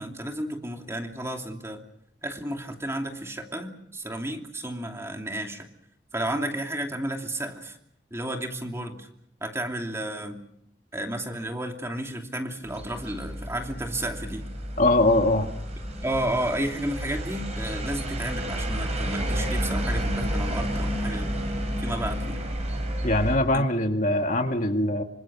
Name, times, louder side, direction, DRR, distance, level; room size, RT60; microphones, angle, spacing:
voice 1, 0.0-1.8 2.2-5.7 6.1-7.8 8.1-9.1 9.4-10.4 10.9-14.4 16.0-21.3 21.8-22.5 23.5-23.6, right 1 dB, 15° right, 3 dB, 2.9 m, -32 dB
sound 1, 12.6-23.4, equal, 40° right, 6.9 m, -30 dB
voice 2, 14.8-15.5 23.0-25.0, left 1 dB, 45° left, 4 dB, 2.2 m, -22 dB
27.5 x 26.0 x 6.3 m, 0.71 s
head